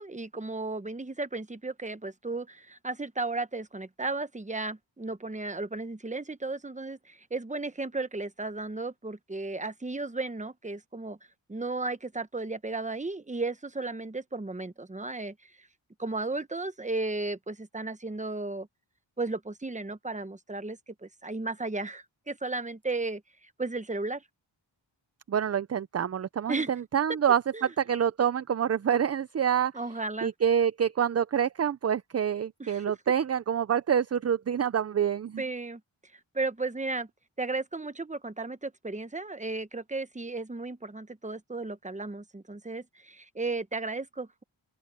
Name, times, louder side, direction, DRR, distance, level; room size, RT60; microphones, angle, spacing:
voice 1, 0.0-11.2 11.5-15.3 16.0-18.7 19.2-23.2 23.6-24.2 26.5-26.7 27.5-27.7 29.7-30.3 32.6-32.8 35.4-35.8 36.3-37.1 37.4-44.4, right 3 dB, 15° right, 1.0 m, -34 dB
voice 2, 25.3-29.7 30.2-35.4, right 8 dB, 35° right, 0.4 m, -27 dB
open air
wide cardioid pair, 105°, 48 cm